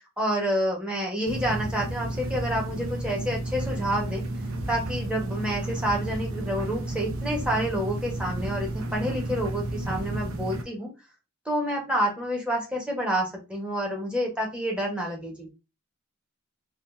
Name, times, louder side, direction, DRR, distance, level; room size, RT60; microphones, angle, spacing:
voice 1, 0.2-4.2 4.7-10.9 11.5-15.5, equal, 5° right, -1 dB, 1.1 m, -28 dB
sound 1, 1.3-10.6, right 1 dB, 70° right, 0.7 m, -32 dB
4.3 x 2.5 x 2.5 m, 0.28 s
head